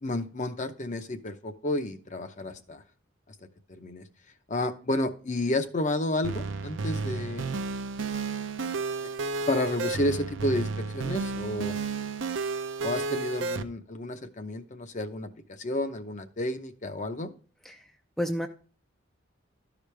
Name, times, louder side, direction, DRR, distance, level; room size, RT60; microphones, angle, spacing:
voice 1, 0.0-2.8 3.7-4.0 4.5-7.4 9.5-11.8 12.8-15.3 15.6-17.3, left 1 dB, 40° left, 8 dB, 0.7 m, -31 dB
sound 1, 6.2-13.6, right 4 dB, 65° right, 0.6 m, -32 dB
voice 2, 17.6-17.9 18.2-18.5, equal, ahead, 5 dB, 0.4 m, -30 dB
13.0 x 5.0 x 3.2 m, 0.39 s
head